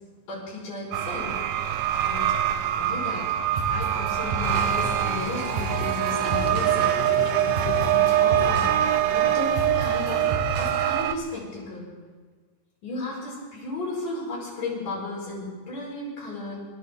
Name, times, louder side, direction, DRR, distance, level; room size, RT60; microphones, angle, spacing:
voice 1, 0.3-3.3 3.6-7.0 7.9-10.3 10.6-11.9 12.8-16.6, left 2 dB, 70° left, -6 dB, 7.1 m, -35 dB
sound 1, 0.9-11.2, right 11 dB, 90° right, 1.6 m, -24 dB
sound 2, 3.6-11.4, right 3 dB, 70° right, 4.3 m, -32 dB
Toilet flush, 4.4-10.8, left 8 dB, 90° left, 2.6 m, -37 dB
28.0 x 12.0 x 3.9 m, 1.5 s
omnidirectional pair, 4.0 m